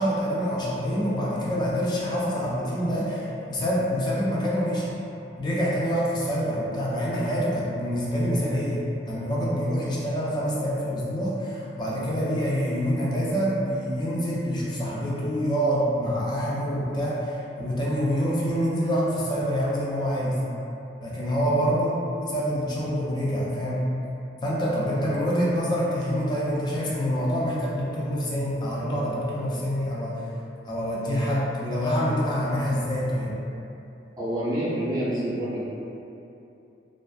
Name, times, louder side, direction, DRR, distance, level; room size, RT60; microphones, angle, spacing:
voice 1, 0.0-4.9 5.4-8.8 9.1-20.4 21.0-23.8 24.4-30.2 30.6-33.3, equal, 25° left, -6 dB, 0.4 m, -26 dB
voice 2, 34.2-35.7, right 1 dB, 20° right, -9 dB, 0.6 m, -27 dB
2.4 x 2.2 x 2.4 m, 2.8 s
head